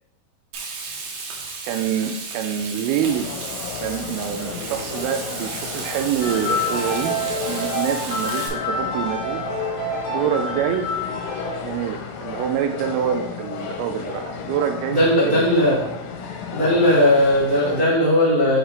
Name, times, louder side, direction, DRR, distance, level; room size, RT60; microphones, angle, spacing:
Frying (food), 0.5-8.5, right 4 dB, 70° right, 2.5 m, -34 dB
voice 1, 1.7-3.3 3.8-7.2 7.5-9.5 9.8-10.9 11.6-15.5, right 9 dB, 90° right, 6 dB, 2.4 m, -26 dB
sound 1, 3.0-17.8, left 6 dB, 80° left, 2.3 m, -33 dB
sound 2, 6.2-11.6, left 1 dB, 65° left, 1.6 m, -27 dB
voice 2, 14.9-15.8 16.5-18.6, left 1 dB, 40° right, -10 dB, 0.7 m, -17 dB
6.3 x 5.0 x 3.3 m, 0.85 s
omnidirectional pair, 4.3 m